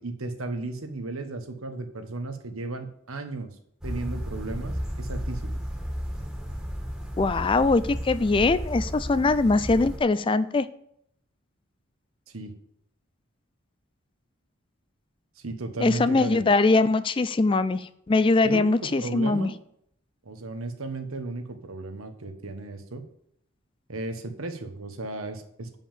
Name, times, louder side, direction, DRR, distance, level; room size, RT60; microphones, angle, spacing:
voice 1, 0.0-3.5 3.8-5.6 12.3-12.5 15.4-16.5 18.4-19.5 20.2-23.0 23.9-25.8, right 2 dB, 85° right, 7 dB, 1.2 m, -35 dB
sound 1, 3.8-10.0, equal, 5° right, 1.6 m, -33 dB
voice 2, 7.2-10.7 15.8-19.5, left 3 dB, 25° left, 14 dB, 0.3 m, -22 dB
7.4 x 5.5 x 7.3 m, 0.72 s
head